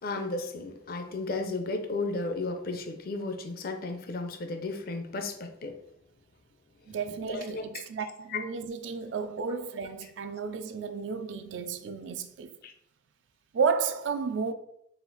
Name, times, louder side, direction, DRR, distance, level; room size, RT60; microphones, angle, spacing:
voice 1, 0.0-5.8 7.3-7.8 8.3-8.4 12.6-12.7, left 3 dB, 50° left, 0.5 m, -34 dB
voice 2, 6.9-12.6 13.5-14.5, right 5 dB, 70° right, 0.4 m, -32 dB
4.1 x 2.4 x 3.9 m
head